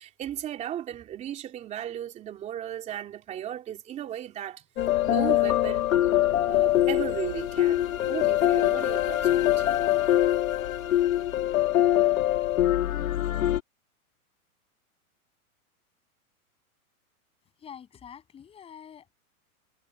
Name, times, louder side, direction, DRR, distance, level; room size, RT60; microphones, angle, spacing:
voice 1, 0.0-4.7 5.0-5.9 6.5-9.7, right 11 dB, 15° right, 3.3 m, -36 dB
sound 1, 4.8-13.6, left 13 dB, 65° left, 1.8 m, -23 dB
voice 2, 17.6-19.1, left 8 dB, 10° left, 7.9 m, -46 dB
hypercardioid pair, 170°, 44 cm